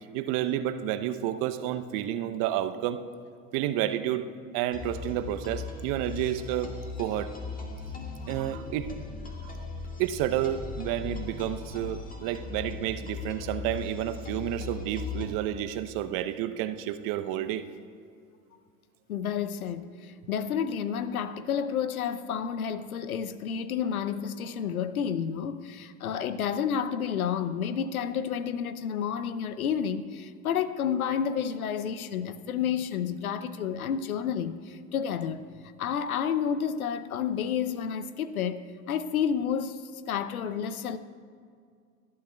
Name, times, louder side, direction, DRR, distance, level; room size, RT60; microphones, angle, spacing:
voice 1, 0.1-3.0 3.5-4.2 4.5-6.7 7.0-7.4 8.3-8.9 9.4-9.5 10.0-17.7, right 12 dB, 50° right, 0.7 m, -30 dB
sound 1, 4.7-15.3, left 4 dB, 20° left, 1.8 m, -38 dB
voice 2, 19.1-35.5 35.8-39.8 40.1-41.0, left 8 dB, 90° left, 0.6 m, -30 dB
19.5 x 11.5 x 2.3 m
hypercardioid pair, 85°, 41 cm